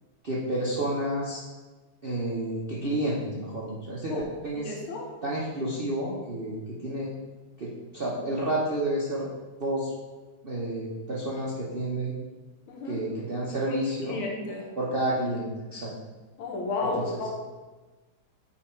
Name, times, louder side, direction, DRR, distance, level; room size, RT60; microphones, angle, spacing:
voice 1, 0.2-1.4 2.0-4.1 4.4-4.7 5.2-7.1 7.6-9.3 9.6-9.9 10.4-12.1 12.9-14.2 14.8-15.9 16.8-17.2, right 1 dB, 50° right, -6 dB, 0.6 m, -30 dB
voice 2, 4.6-5.1 12.7-13.0 13.7-14.7 16.4-17.3, left 3 dB, 75° left, 0 dB, 2.0 m, -32 dB
8.5 x 3.5 x 4.3 m, 1.2 s
omnidirectional pair, 2.3 m